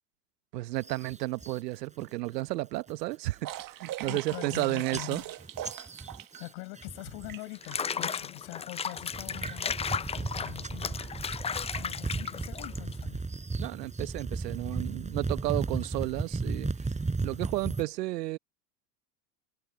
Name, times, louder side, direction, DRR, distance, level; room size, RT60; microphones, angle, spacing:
voice 1, 0.5-5.2 13.6-16.7 17.2-18.4, right 18 dB, 80° right, 1.1 m, -32 dB
sound 1, 0.8-1.6 2.0-2.4 2.8-3.1 3.6-3.7 3.9-4.6 4.9-7.5 7.7-8.3 8.8-17.8, right 3 dB, 15° right, 6.6 m, -36 dB
sound 2, 3.4-6.5 6.8-8.0 8.6-8.7 8.9-9.2 9.5-9.6 10.3-10.5 10.8-11.1 11.7-11.8 12.2-12.3, right 14 dB, 45° right, 1.5 m, -41 dB
voice 2, 4.1-5.3 5.9-6.1 6.4-11.1 11.8-13.3, left 28 dB, 70° left, 6.9 m, -43 dB
Water / Bathtub (filling or washing), 7.5-13.0, left 6 dB, 15° left, 0.4 m, -35 dB
hypercardioid pair, 90°, 48 cm